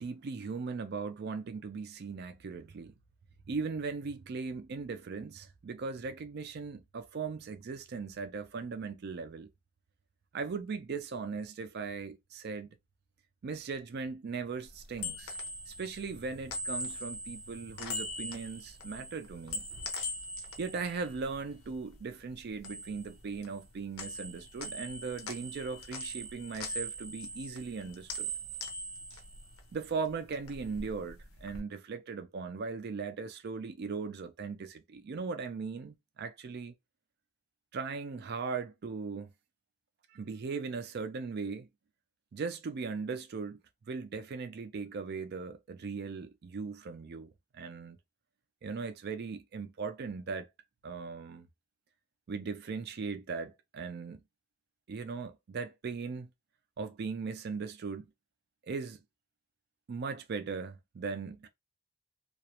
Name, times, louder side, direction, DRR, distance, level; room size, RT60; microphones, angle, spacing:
voice 1, 0.0-3.0 3.5-9.5 10.3-12.8 13.4-15.4 15.7-19.7 20.6-28.3 29.7-36.7 37.7-39.3 40.1-41.7 42.3-43.6 43.9-48.0 48.6-50.5 50.8-51.5 52.3-54.2 54.9-56.3 56.8-58.1 58.7-59.0 59.9-61.5, right 4 dB, 45° right, 0.4 m, -38 dB
sound 1, 14.7-22.0 22.3-23.7 24.0-30.0 30.3-31.6, equal, 70° left, 0.6 m, -41 dB
2.3 x 2.0 x 2.8 m
head